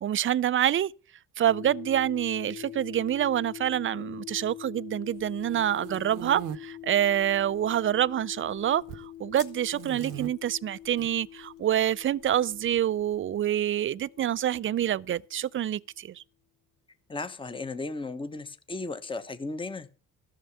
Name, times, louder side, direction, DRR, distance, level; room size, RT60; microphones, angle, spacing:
voice 1, 0.0-0.9 1.4-16.2, right 11 dB, 35° right, 0.5 m, -27 dB
sound 1, 1.5-15.4, left 12 dB, 55° left, 1.1 m, -44 dB
sound 2, 5.2-6.6 7.2-7.8 8.1-9.1 9.7-10.3 10.8-11.1 12.2-13.2, right 11 dB, 65° right, 0.9 m, -40 dB
sound 3, 9.1-11.3 11.5-11.8 12.0-12.1 13.6-13.7, left 5 dB, 40° left, 1.9 m, -51 dB
voice 2, 17.1-19.9, left 3 dB, 15° left, 1.1 m, -35 dB
13.0 x 6.6 x 7.1 m
supercardioid pair, 80°, 35 cm